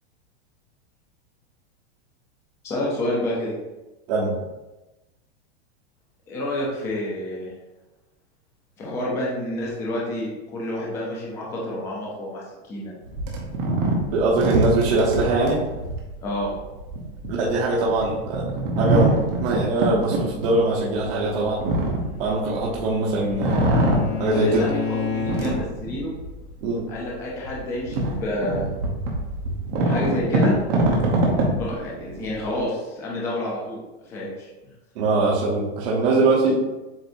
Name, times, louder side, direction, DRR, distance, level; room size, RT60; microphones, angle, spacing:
voice 1, 2.6-3.5 6.3-7.5 8.8-12.9 16.2-16.5 24.2-26.1 26.9-28.7 29.8-30.6 31.6-33.8 34.1-34.5, left 1 dB, 10° left, -4 dB, 0.4 m, -29 dB
sound 1, 13.0-22.9 23.3-24.7 25.1-26.4 26.9-27.0 27.4-32.6, right 2 dB, 30° right, 0.8 m, -24 dB
voice 2, 14.1-15.6 17.3-18.5 18.8-21.6 22.2-23.6 24.2-24.7 26.6-26.8 35.0-36.6, right 2 dB, 60° right, -6 dB, 1.0 m, -22 dB
Bowed string instrument, 21.9-25.8, left 7 dB, 75° left, 1.5 m, -31 dB
7.6 x 2.6 x 2.6 m, 1.1 s
supercardioid pair, 170°, 33 cm